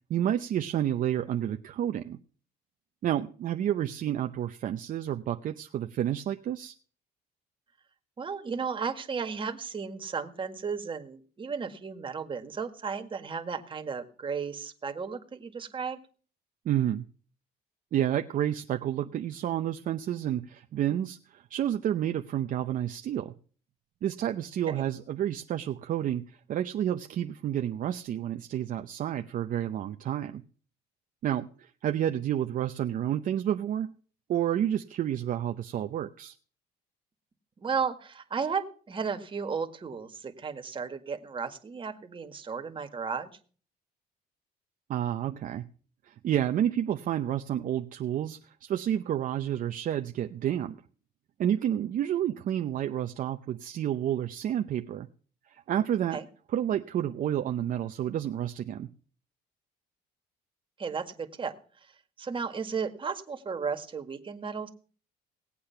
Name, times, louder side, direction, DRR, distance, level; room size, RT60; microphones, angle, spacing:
voice 1, 0.1-2.2 3.0-6.7 16.6-17.1 17.9-23.3 24.0-30.4 31.2-33.9 34.3-36.3 44.9-45.6 46.1-50.8 51.4-55.1 55.5-56.2 56.5-58.9, right 11 dB, 55° right, 6 dB, 0.7 m, -30 dB
voice 2, 8.2-16.0 20.9-21.0 24.7-24.8 37.6-43.3 56.1-56.3 60.8-61.5 62.2-64.7, right 5 dB, 30° right, 6 dB, 1.8 m, -34 dB
18.5 x 8.5 x 5.8 m, 0.43 s
cardioid pair, 110°, 17 cm